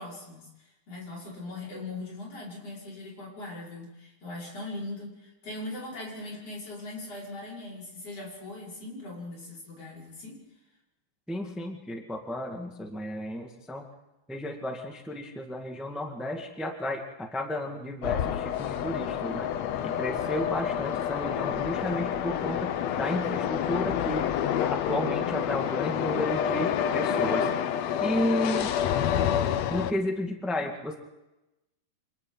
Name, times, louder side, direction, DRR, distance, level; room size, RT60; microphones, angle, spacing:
voice 1, 0.0-10.4, left 2 dB, 40° left, -4 dB, 6.6 m, -40 dB
voice 2, 11.3-13.8 14.3-19.5 19.8-24.3 24.6-27.5 28.0-28.7 29.7-30.9, left 1 dB, ahead, 2 dB, 0.3 m, -32 dB
sound 1, 18.0-29.9, left 9 dB, 85° left, 1.4 m, -28 dB
29.5 x 26.5 x 4.0 m, 0.98 s
omnidirectional pair, 4.2 m